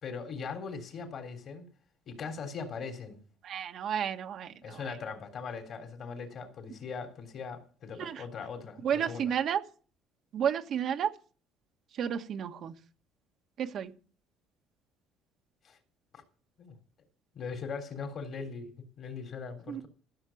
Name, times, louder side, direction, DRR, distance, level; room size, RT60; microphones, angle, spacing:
voice 1, 0.0-1.7 2.1-3.2 4.6-9.3 15.6-15.8 16.1-16.2 16.6-16.7 17.3-19.9, left 5 dB, 50° left, 3.5 m, -40 dB
voice 2, 3.4-4.5 8.0-8.1 8.8-9.6 10.3-11.1 12.0-12.7 13.6-13.9 19.7-19.8, right 8 dB, 55° right, 1.4 m, -31 dB
14.5 x 6.6 x 7.2 m
supercardioid pair, 95°, 0 cm